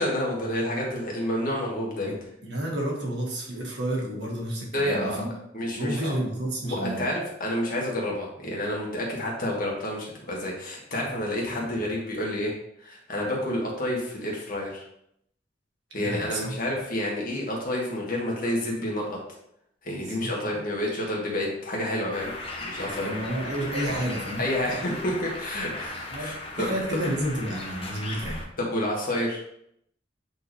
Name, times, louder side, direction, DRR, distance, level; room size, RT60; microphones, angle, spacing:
voice 1, 0.0-2.1 4.7-5.2 5.5-6.1 6.6-12.5 12.8-14.8 15.9-19.2 19.8-22.3 22.6-23.1 23.9-24.0 24.4-26.7 28.6-29.4, left 1 dB, 50° left, -2 dB, 1.9 m, -29 dB
voice 2, 2.4-5.3 5.7-7.1 16.0-16.6 20.1-20.6 22.8-24.4 26.1-28.5, right 1 dB, 65° right, -2 dB, 1.8 m, -31 dB
Bird, 22.1-28.4, left 2 dB, 30° left, 1.0 m, -37 dB
8.2 x 4.2 x 3.3 m, 0.74 s
head